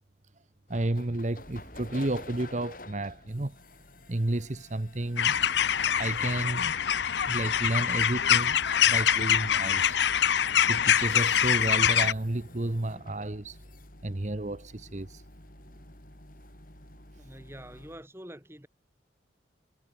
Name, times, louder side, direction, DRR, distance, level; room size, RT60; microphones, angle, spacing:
sound 1, 0.7-18.0, left 2 dB, 45° left, 7.7 m, -51 dB
voice 1, 0.7-3.6 4.1-5.4 5.9-6.8 7.3-10.0 10.6-13.6 14.0-15.2, right 1 dB, 40° right, 0.9 m, -32 dB
sound 2, 5.2-12.1, left 9 dB, 65° left, 0.6 m, -24 dB
voice 2, 17.2-18.7, equal, 15° right, 7.1 m, -46 dB
head